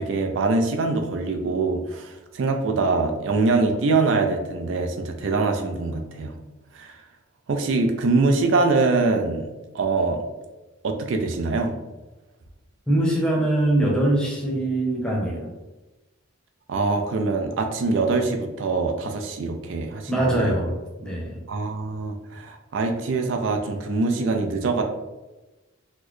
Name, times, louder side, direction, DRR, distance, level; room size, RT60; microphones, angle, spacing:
voice 1, 0.0-6.3 6.7-7.0 7.5-9.5 9.7-10.2 10.8-11.7 16.7-20.6 21.5-24.8, right 3 dB, 70° right, 4 dB, 0.4 m, -23 dB
voice 2, 12.9-15.5 20.1-21.4, right 1 dB, 5° left, -3 dB, 0.7 m, -23 dB
4.1 x 2.1 x 3.0 m, 1.1 s
head